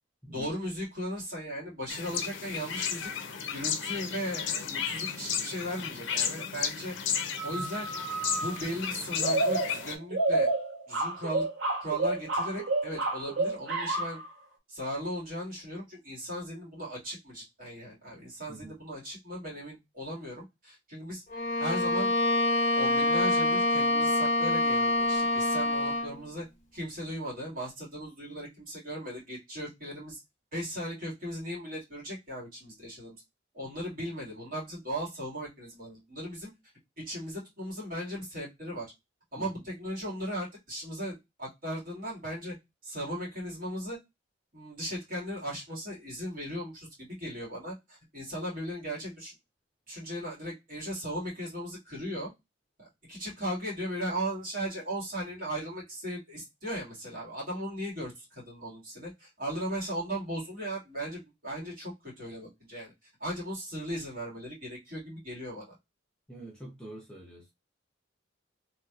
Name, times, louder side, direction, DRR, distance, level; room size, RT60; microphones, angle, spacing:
voice 1, 0.3-3.1 3.5-7.0 7.4-7.9 8.4-10.6 10.9-11.5 11.8-14.2 14.7-21.2 21.6-22.1 22.7-26.5 26.7-30.2 30.5-33.2 33.5-36.5 37.1-38.9 39.3-42.6 42.8-44.0 44.5-49.3 49.9-52.3 52.8-62.9 63.2-65.8, equal, 50° right, 2.0 m, -37 dB
sound 1, 1.9-10.0, left 7 dB, 80° left, 0.5 m, -34 dB
sound 2, 7.4-8.6 9.2-14.3, right 2 dB, 70° right, 0.9 m, -30 dB
Bowed string instrument, 21.3-26.2, left 2 dB, 40° left, 0.9 m, -26 dB
voice 2, 66.3-67.5, right 2 dB, 5° left, 0.7 m, -45 dB
3.1 x 2.8 x 2.4 m
head